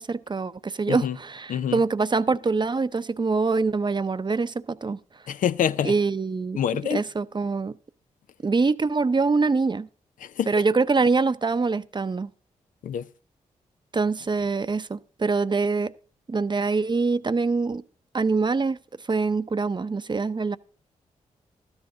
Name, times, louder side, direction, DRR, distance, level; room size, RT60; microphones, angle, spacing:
voice 1, 0.0-5.0 5.8-6.6 6.9-7.7 8.4-9.9 10.5-12.3 13.9-15.9 16.3-17.8 18.1-18.8 19.1-20.6, right 4 dB, 35° right, 0.7 m, -24 dB
voice 2, 1.5-1.8 5.3-5.9 6.6-7.0 10.2-10.5 12.8-13.1, left 9 dB, 75° left, 0.5 m, -26 dB
13.0 x 9.7 x 3.9 m
supercardioid pair, 45°, 14 cm